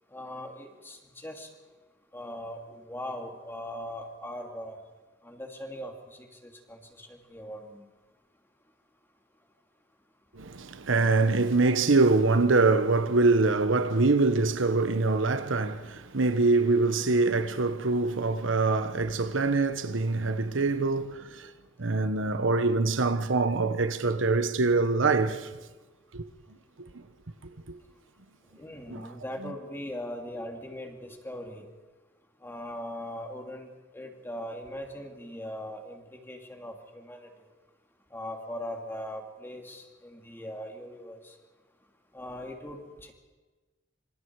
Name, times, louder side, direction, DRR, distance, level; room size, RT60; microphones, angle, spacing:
voice 1, 0.1-1.5 2.1-4.8 5.2-7.9 28.6-31.7 32.4-33.7 33.9-37.3 38.1-41.3 42.1-43.1, left 1 dB, 10° left, 2.9 m, -40 dB
voice 2, 10.3-21.5 21.8-25.5 26.1-26.2 26.9-27.0 28.9-29.1 29.4-29.5, right 3 dB, 80° right, 1.1 m, -24 dB
26.5 x 26.0 x 4.8 m
head